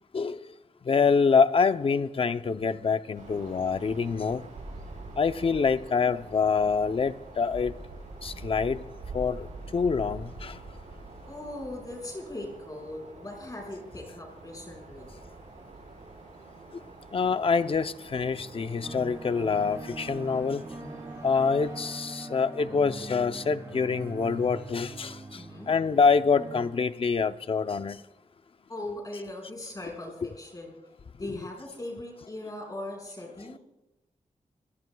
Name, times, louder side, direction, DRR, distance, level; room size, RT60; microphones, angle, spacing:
voice 1, 0.9-4.4 5.2-7.7 8.2-8.8 9.1-9.5 9.7-10.6 17.1-20.6 21.2-25.2 25.7-28.0 30.2-30.3 31.3-31.4, left 5 dB, 45° left, 0.6 m, -25 dB
sound 1, 3.1-21.8, right 2 dB, 75° right, 7.3 m, -45 dB
voice 2, 11.2-15.1 25.3-25.7 28.7-30.8 31.2-33.6, left 1 dB, 30° left, 5.0 m, -39 dB
sound 2, 18.3-26.7, right 2 dB, 25° right, 5.6 m, -42 dB
26.0 x 21.0 x 2.3 m
wide cardioid pair, 135°, 13 cm